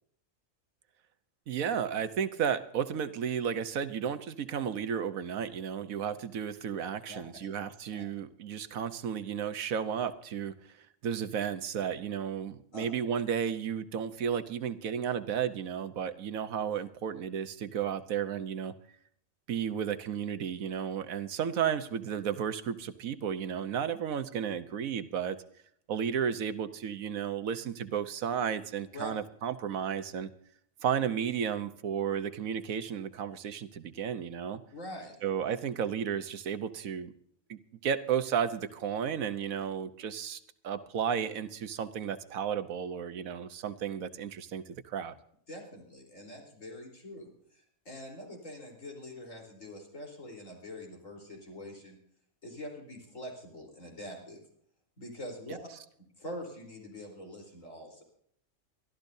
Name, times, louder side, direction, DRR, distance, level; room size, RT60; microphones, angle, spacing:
voice 1, 1.5-10.5 11.0-18.7 19.5-25.4 25.9-30.3 30.8-34.6 35.2-37.1 37.5-45.1, right 8 dB, 90° right, 11 dB, 1.4 m, -33 dB
voice 2, 34.7-35.2 45.5-52.0 52.4-54.4 55.0-55.6 56.2-58.0, left 1 dB, 70° left, 1 dB, 4.3 m, -44 dB
23.5 x 13.5 x 2.7 m, 0.66 s
omnidirectional pair, 1.4 m